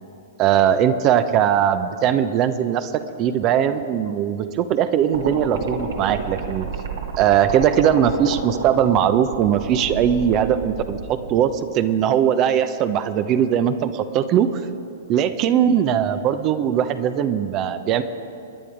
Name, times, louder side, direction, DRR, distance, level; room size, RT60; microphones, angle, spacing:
voice 1, 0.4-6.7 7.2-14.6 15.1-18.0, right 9 dB, 35° right, 10 dB, 0.9 m, -20 dB
sound 1, 5.1-11.3, right 5 dB, 65° right, 2.2 m, -30 dB
26.5 x 10.5 x 5.1 m, 2.7 s
hypercardioid pair, 110°, 0 cm